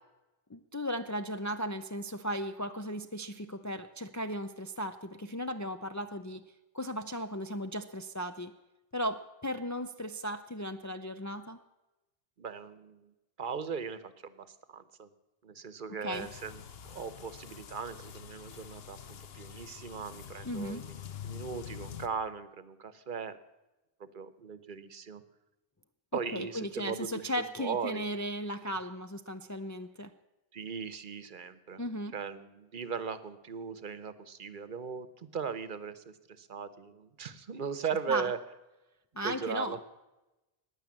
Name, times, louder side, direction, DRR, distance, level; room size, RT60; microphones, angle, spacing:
voice 1, 0.5-6.4 6.7-8.5 8.9-11.6 16.0-16.3 20.4-20.9 26.3-30.1 31.8-32.1 38.1-38.3 39.1-39.8, equal, 25° left, 7 dB, 0.4 m, -36 dB
voice 2, 12.4-15.1 15.4-20.9 21.2-23.4 24.0-25.2 26.1-27.3 27.6-28.0 30.5-31.8 32.1-38.4 39.2-39.8, right 6 dB, 55° right, 14 dB, 1.0 m, -38 dB
sound 1, 16.1-22.1, left 9 dB, 75° left, 1.0 m, -46 dB
15.5 x 9.9 x 8.6 m, 1.0 s
omnidirectional pair, 1.0 m